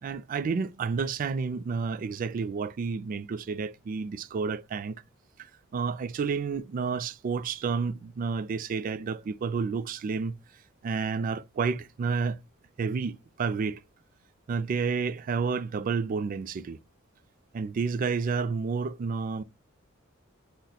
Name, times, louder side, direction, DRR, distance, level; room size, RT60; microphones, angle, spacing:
voice 1, 0.0-4.9 5.4-10.4 10.8-12.4 12.8-13.8 14.5-16.8 17.5-19.4, right 5 dB, 40° right, 0.3 m, -30 dB
3.8 x 2.1 x 2.8 m
head